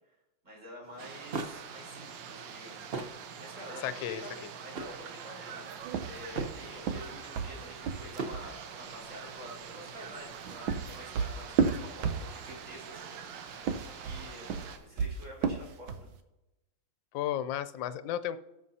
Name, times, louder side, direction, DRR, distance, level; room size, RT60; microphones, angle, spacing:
voice 1, 0.4-2.8 3.4-5.7 6.1-13.2 14.0-16.1, equal, 35° right, -4 dB, 4.2 m, -48 dB
sound 1, 0.8-12.7, right 3 dB, 55° right, 0.6 m, -45 dB
sound 2, 1.0-14.8, right 7 dB, 70° right, 1.5 m, -45 dB
voice 2, 3.8-4.2 17.1-18.4, left 11 dB, 75° left, 13 dB, 1.2 m, -33 dB
sound 3, 5.9-8.5 10.2-12.6 13.5-16.1, right 6 dB, 85° right, 1.6 m, -32 dB
18.0 x 6.2 x 2.8 m, 0.94 s
omnidirectional pair, 2.2 m